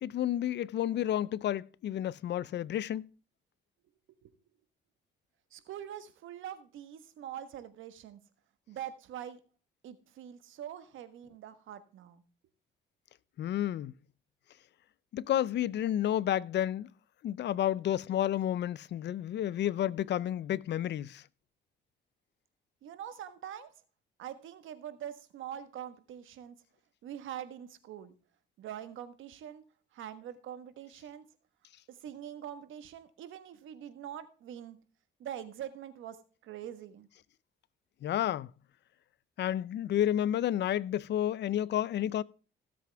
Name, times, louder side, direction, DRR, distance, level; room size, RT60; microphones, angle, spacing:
voice 1, 0.0-3.1 13.4-13.9 15.1-16.9 17.2-21.2 38.0-38.5 39.4-42.2, left 11 dB, 60° left, 0.5 m, -31 dB
voice 2, 5.5-8.2 8.7-9.4 9.8-12.2 22.8-23.7 24.2-26.6 27.0-28.1 28.6-29.6 29.9-31.2 31.9-34.8 35.2-37.1, right 10 dB, 80° right, 1.4 m, -44 dB
16.5 x 7.7 x 3.5 m
cardioid pair, 90°, 20 cm